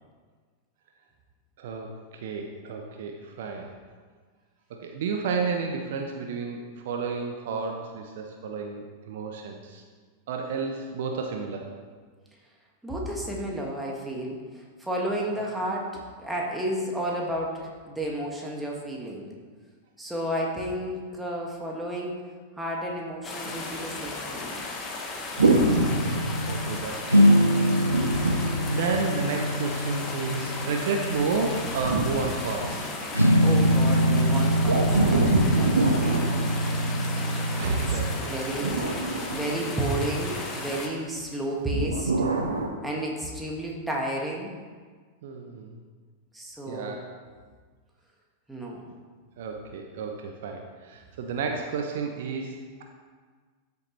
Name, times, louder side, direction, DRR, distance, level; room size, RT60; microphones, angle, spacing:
voice 1, 1.6-3.7 4.8-9.8 10.3-11.7 25.8-28.1 28.7-32.9 37.0-37.1 37.4-38.4 45.2-45.8 46.7-47.1 49.4-52.8, right 5 dB, 55° right, 3 dB, 0.9 m, -32 dB
voice 2, 12.8-19.3 20.0-22.2 22.6-24.6 33.4-36.3 37.6-38.8 39.3-42.1 42.8-44.5 46.3-47.0 48.5-48.8, right 1 dB, 5° right, -2 dB, 2.0 m, -32 dB
sound 1, 23.2-40.9, left 3 dB, 25° left, 1.5 m, -35 dB
sound 2, 25.4-26.8 27.8-29.4 31.1-33.1 34.6-37.2 38.3-40.2 41.7-42.7, right 3 dB, 70° right, 1.2 m, -26 dB
sound 3, 25.4-26.8 27.1-32.8 33.1-38.2, equal, 85° right, 0.6 m, -24 dB
13.0 x 7.0 x 3.3 m, 1.5 s
figure-of-eight pair, 90°, 0 cm